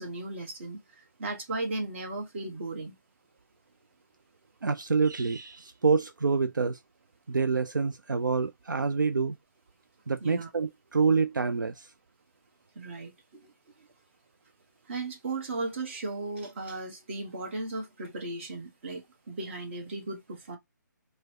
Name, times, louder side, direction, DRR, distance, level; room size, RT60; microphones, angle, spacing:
voice 1, 0.0-3.0 10.2-10.5 12.7-13.9 14.9-20.6, right 2 dB, 40° right, 1.1 m, -36 dB
voice 2, 4.6-6.8 7.3-9.4 10.1-11.9, right 4 dB, 75° right, 0.4 m, -27 dB
4.5 x 2.1 x 2.8 m
figure-of-eight pair, 140°, 10 cm